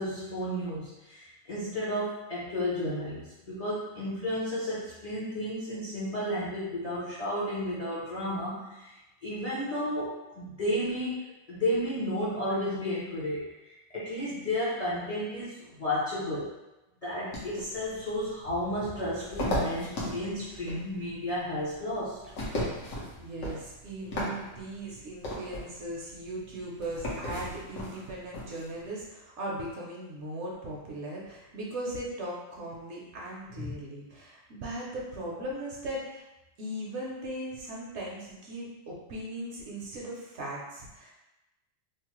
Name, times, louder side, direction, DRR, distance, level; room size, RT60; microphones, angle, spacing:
voice 1, 0.0-11.2 11.5-16.5 17.0-22.2 33.6-33.7, left 1 dB, 40° left, -9 dB, 0.5 m, -32 dB
sound 1, 17.3-28.9, left 1 dB, 80° left, 1.2 m, -36 dB
voice 2, 23.2-36.2 36.6-41.1, right 1 dB, 65° right, -4 dB, 0.8 m, -38 dB
3.1 x 2.0 x 3.0 m, 1.0 s
omnidirectional pair, 1.4 m